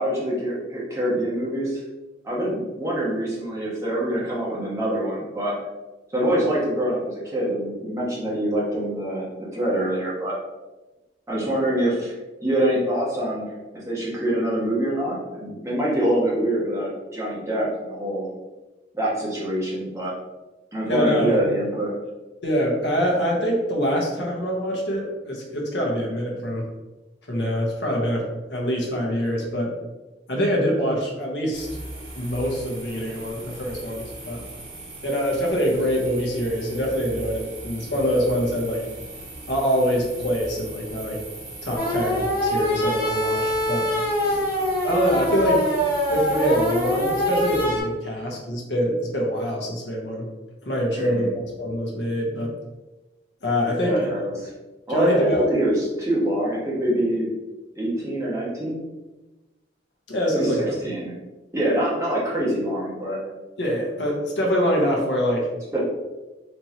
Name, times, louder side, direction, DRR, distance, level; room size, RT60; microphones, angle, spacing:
voice 1, 0.0-1.8 2.2-5.5 6.1-9.3 9.5-10.3 11.3-12.1 12.4-13.5 13.9-18.3 18.9-20.1 20.7-22.0 50.9-51.3 53.8-54.5 54.9-57.3 57.7-58.8 60.3-60.5 60.8-61.2 61.5-63.2 65.7-65.8, right 1 dB, 15° right, -7 dB, 1.2 m, -25 dB
voice 2, 20.9-21.4 22.4-26.7 27.3-29.7 30.3-31.7 32.2-34.4 35.0-38.8 39.5-41.2 41.6-43.9 44.2-44.4 44.8-45.7 46.1-50.3 50.6-52.5 53.4-54.1 54.9-55.4 60.1-60.7 63.6-65.5, equal, 75° left, -1 dB, 1.0 m, -24 dB
sound 1, 31.5-47.6, right 2 dB, 45° right, 1.5 m, -39 dB
sound 2, 41.8-47.8, equal, 30° left, 1.3 m, -24 dB
4.3 x 3.1 x 2.8 m, 1.1 s
head